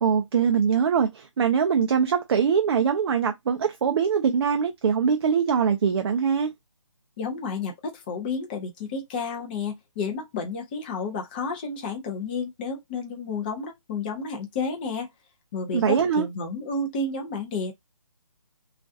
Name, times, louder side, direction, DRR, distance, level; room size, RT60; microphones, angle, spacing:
voice 1, 0.0-6.5 15.7-16.3, right 7 dB, 50° right, 0.4 m, -22 dB
voice 2, 7.2-15.1 15.5-17.7, left 4 dB, 15° left, 0.4 m, -31 dB
2.4 x 2.1 x 2.6 m
figure-of-eight pair, 150°, 17 cm